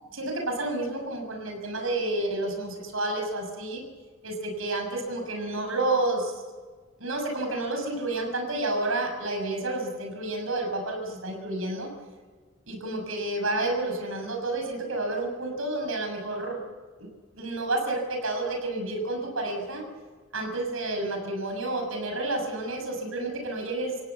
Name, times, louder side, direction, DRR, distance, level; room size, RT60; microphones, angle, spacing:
voice 1, 0.1-3.8 4.2-6.4 7.0-11.9 12.7-16.6 17.0-17.1 17.4-19.8 20.3-24.0, right 2 dB, 90° right, 3 dB, 6.5 m, -30 dB
28.0 x 16.5 x 8.3 m, 1.5 s
head